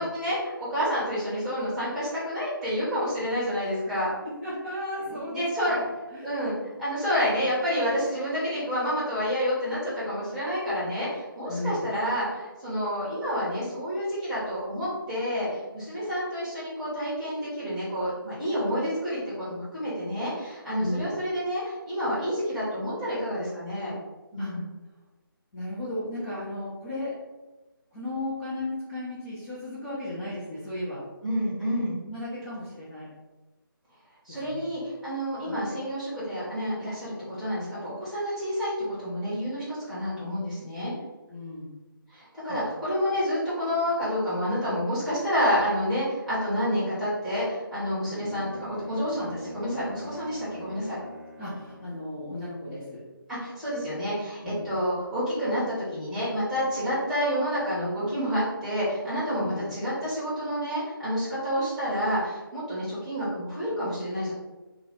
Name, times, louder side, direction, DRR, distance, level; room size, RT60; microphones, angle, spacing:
voice 1, 0.0-4.1 5.1-5.8 6.2-23.9 24.3-24.6 31.2-32.0 34.2-40.9 42.1-51.0 53.3-64.3, equal, 5° right, -12 dB, 1.0 m, -29 dB
voice 2, 4.2-5.8 6.1-6.3 11.5-11.8 20.7-21.1 24.4-24.5 25.5-27.1 27.9-31.0 31.6-33.1 34.3-34.6 35.4-35.7 41.3-41.7 42.5-42.6 48.1-48.4 51.4-53.0 54.4-54.7 59.4-59.6, left 1 dB, 20° left, -10 dB, 0.6 m, -35 dB
Bowed string instrument, 48.0-52.1, left 1 dB, 25° right, 0.5 m, -43 dB
3.2 x 2.3 x 3.6 m, 1.2 s
figure-of-eight pair, 155°, 12 cm